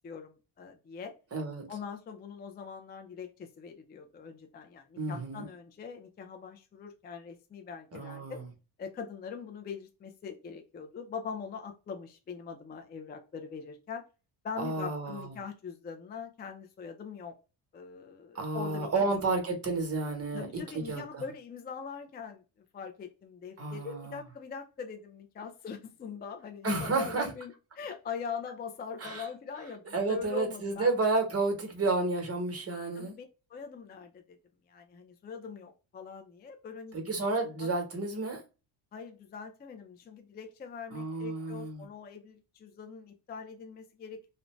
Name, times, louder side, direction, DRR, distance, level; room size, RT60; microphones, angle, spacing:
voice 1, 0.0-1.1 1.7-8.4 8.8-14.0 14.4-17.3 17.7-18.9 20.3-22.4 22.7-30.9 33.0-34.4 34.7-36.9 37.4-37.7 38.9-44.3, left 6 dB, 25° left, 0.3 m, -42 dB
voice 2, 1.3-1.6 5.0-5.5 7.9-8.4 14.6-15.3 18.3-21.2 23.6-24.2 26.6-27.3 29.0-29.3 29.9-33.1 36.9-38.4 40.9-41.9, right 3 dB, 30° right, 1.0 m, -31 dB
2.5 x 2.1 x 3.0 m
cardioid pair, 95°, 46 cm